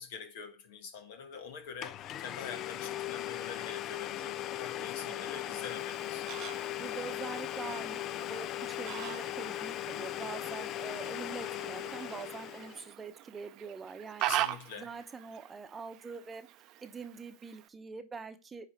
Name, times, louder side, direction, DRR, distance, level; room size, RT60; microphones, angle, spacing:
voice 1, 0.0-6.3 14.2-14.9, left 6 dB, 70° left, 1.4 m, -45 dB
Domestic sounds home sounds, 1.3-1.4 1.8-12.9, left 13 dB, 45° left, 0.4 m, -38 dB
voice 2, 4.8-5.6 6.8-14.3 14.8-16.5 16.8-18.7, right 5 dB, 20° right, 0.8 m, -44 dB
Fowl, 5.7-17.7, right 14 dB, 50° right, 0.6 m, -42 dB
9.4 x 3.3 x 4.5 m
hypercardioid pair, 95°, 0 cm